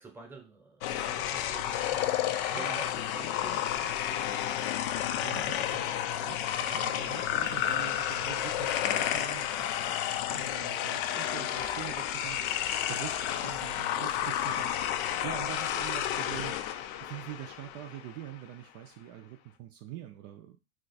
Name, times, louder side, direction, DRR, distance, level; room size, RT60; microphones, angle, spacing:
voice 1, 0.0-4.5 6.7-7.2 13.9-14.1, right 3 dB, 5° right, 2 dB, 0.8 m, -49 dB
sound 1, 0.8-18.1, left 11 dB, 60° left, 0.4 m, -31 dB
voice 2, 2.5-2.8 5.1-10.0 10.3-12.4 12.9-16.6 17.0-20.7, right 13 dB, 50° right, 5 dB, 0.4 m, -44 dB
2.4 x 2.4 x 4.0 m, 0.30 s
supercardioid pair, 110°, 31 cm